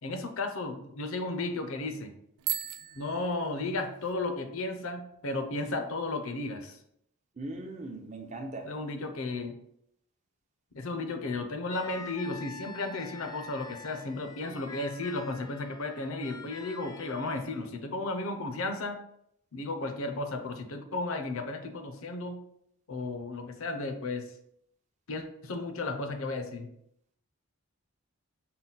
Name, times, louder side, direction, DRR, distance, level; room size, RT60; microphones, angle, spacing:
voice 1, 0.0-2.1 2.9-6.8 8.6-9.6 10.7-19.0 19.5-22.4 22.9-24.3 25.1-26.7, left 2 dB, 65° left, 6 dB, 0.6 m, -34 dB
Bicycle bell, 2.4-4.1, right 14 dB, 85° right, 0.3 m, -37 dB
voice 2, 7.4-8.7, right 2 dB, 30° right, 3 dB, 0.5 m, -39 dB
sound 1, 11.7-17.7, left 3 dB, 15° left, 0.4 m, -47 dB
5.6 x 2.2 x 3.9 m, 0.74 s
head